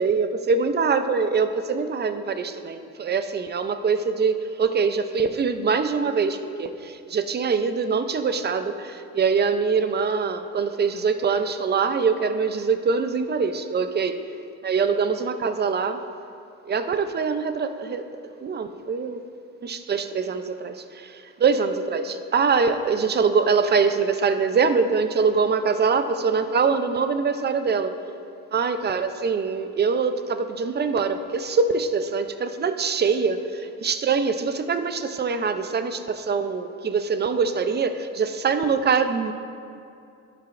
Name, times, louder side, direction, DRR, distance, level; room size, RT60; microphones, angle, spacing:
voice 1, 0.0-14.2 14.6-16.0 16.6-18.1 18.4-19.2 19.6-27.9 28.5-39.3, right 5 dB, 35° right, 9 dB, 0.6 m, -24 dB
11.5 x 10.5 x 2.6 m, 2.5 s
cardioid pair, 90°, 30 cm